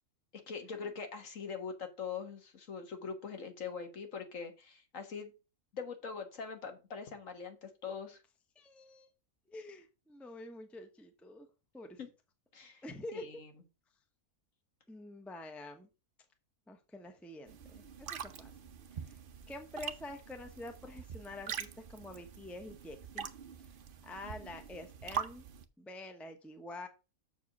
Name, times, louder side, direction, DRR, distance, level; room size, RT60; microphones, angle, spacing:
voice 1, 0.3-5.3 5.7-8.2 12.0-12.1 12.5-12.8 13.1-13.5, left 5 dB, 60° left, 6 dB, 1.7 m, -42 dB
voice 2, 8.6-9.1 9.5-11.5 11.7-12.0 12.8-13.4 14.9-15.9 16.7-18.5 18.9-19.2 19.5-23.3 24.0-25.4 25.8-26.9, left 2 dB, ahead, 6 dB, 0.7 m, -47 dB
sound 1, 17.5-25.6, right 7 dB, 50° right, 0.6 m, -44 dB
6.9 x 4.6 x 6.0 m, 0.30 s
omnidirectional pair, 1.5 m